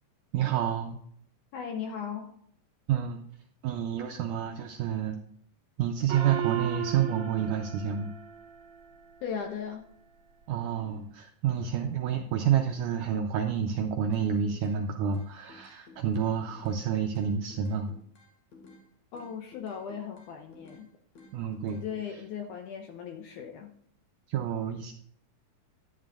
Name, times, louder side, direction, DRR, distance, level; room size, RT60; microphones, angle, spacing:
voice 1, 0.3-1.0 2.9-3.2 3.6-5.2 5.8-8.1 10.5-17.9 21.3-21.8 24.3-24.9, right 8 dB, 85° right, 4 dB, 1.8 m, -29 dB
voice 2, 1.5-2.3 9.2-9.8 19.1-20.9 21.7-23.7, left 7 dB, 80° left, 4 dB, 1.9 m, -37 dB
Gong, 6.1-9.0, right 11 dB, 60° right, 2.0 m, -36 dB
sound 1, 14.1-14.8 15.1-16.8 17.1-18.8 19.1-20.8 21.1-22.0, left 3 dB, 50° left, 2.8 m, -53 dB
11.0 x 9.4 x 2.5 m, 0.66 s
omnidirectional pair, 4.3 m